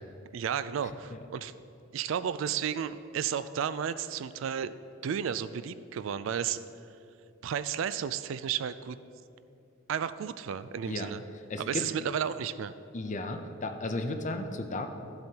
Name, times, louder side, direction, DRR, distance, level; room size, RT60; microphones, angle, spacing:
voice 1, 0.3-1.5 1.9-4.7 5.0-6.6 7.4-9.0 9.9-11.2 11.6-12.7, right 8 dB, 70° right, 14 dB, 0.3 m, -33 dB
voice 2, 11.5-11.9 12.9-14.9, left 2 dB, 40° left, 6 dB, 0.6 m, -34 dB
13.5 x 7.8 x 2.9 m, 2.7 s
head